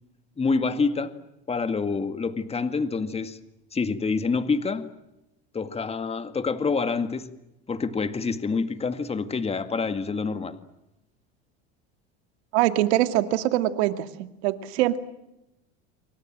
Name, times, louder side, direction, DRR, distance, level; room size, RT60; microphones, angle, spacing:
voice 1, 0.4-1.1 1.5-3.4 3.7-4.9 5.5-7.3 7.7-10.6, left 4 dB, 20° left, 10 dB, 2.1 m, -27 dB
voice 2, 12.5-15.0, right 14 dB, 80° right, 9 dB, 2.4 m, -23 dB
28.5 x 24.5 x 7.6 m, 0.89 s
supercardioid pair, 110°, 32 cm